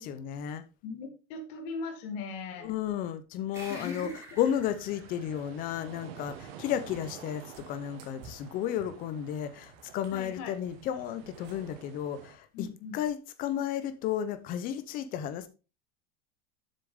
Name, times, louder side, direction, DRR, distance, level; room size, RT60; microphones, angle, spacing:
voice 1, 0.0-0.6 2.6-4.1 4.4-15.5, left 10 dB, 30° left, 0.7 m, -33 dB
voice 2, 0.8-2.7 3.7-4.4 6.6-6.7 10.1-10.5 12.5-13.0, left 4 dB, 45° left, 1.9 m, -39 dB
sound 1, 3.5-6.5, right 2 dB, 10° right, 2.2 m, -50 dB
sound 2, 4.3-12.4, right 8 dB, 70° right, 1.7 m, -50 dB
Cat, 6.8-11.9, right 6 dB, 35° right, 1.3 m, -55 dB
7.9 x 6.7 x 3.7 m
supercardioid pair, 175°, 31 cm